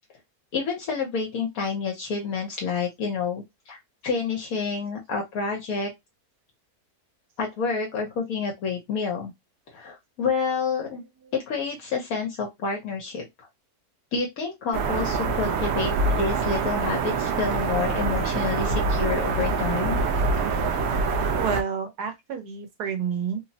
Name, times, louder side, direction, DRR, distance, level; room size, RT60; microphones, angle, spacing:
voice 1, 0.5-5.9 7.4-9.3 9.7-11.0 11.3-13.5 14.1-20.0, left 5 dB, 70° left, 1.2 m, -29 dB
sound 1, 14.7-21.6, right 4 dB, 70° right, 0.6 m, -25 dB
voice 2, 21.4-23.4, right 6 dB, 90° right, 1.4 m, -29 dB
3.2 x 2.0 x 2.7 m
omnidirectional pair, 1.6 m